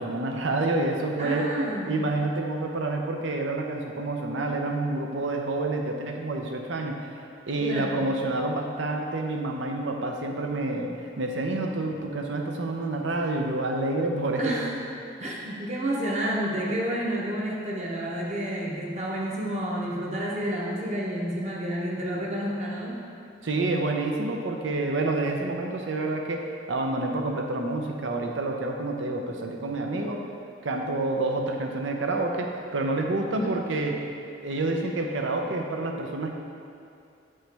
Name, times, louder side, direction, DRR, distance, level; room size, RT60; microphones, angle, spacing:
voice 1, 0.0-1.5 1.9-7.1 7.5-14.5 23.4-30.2 30.6-34.0 34.4-36.4, right 2 dB, 90° right, 2 dB, 0.7 m, -28 dB
voice 2, 1.2-2.0 7.6-8.0 14.4-14.7 15.2-22.9 33.3-33.5, right 1 dB, 35° right, -3 dB, 1.0 m, -30 dB
7.5 x 5.4 x 3.4 m, 2.6 s
head